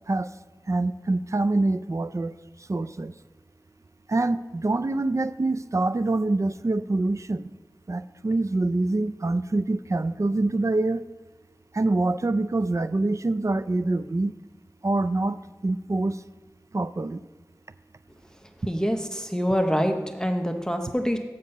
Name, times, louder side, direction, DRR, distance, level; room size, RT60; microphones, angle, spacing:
voice 1, 0.7-2.3 2.7-3.1 4.1-7.5 7.9-11.0 11.7-14.3 14.8-15.4 15.6-16.2 16.7-17.2, right 2 dB, 45° right, 13 dB, 0.4 m, -25 dB
voice 2, 18.7-21.2, equal, 10° left, 4 dB, 0.7 m, -25 dB
7.2 x 5.2 x 6.7 m, 1.2 s
wide cardioid pair, 55°, 8 cm